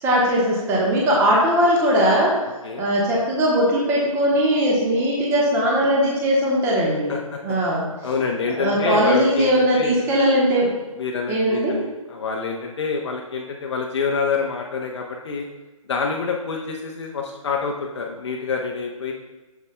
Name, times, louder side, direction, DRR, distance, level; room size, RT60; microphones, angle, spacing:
voice 1, 0.0-2.3 2.8-7.1 7.4-7.8 8.6-10.7 11.3-11.8, equal, 15° right, -4 dB, 1.2 m, -19 dB
voice 2, 8.0-10.0 11.0-15.4 15.9-19.1, left 5 dB, 55° left, 0 dB, 0.8 m, -27 dB
8.1 x 7.0 x 2.2 m, 1.2 s
figure-of-eight pair, 145°, 18 cm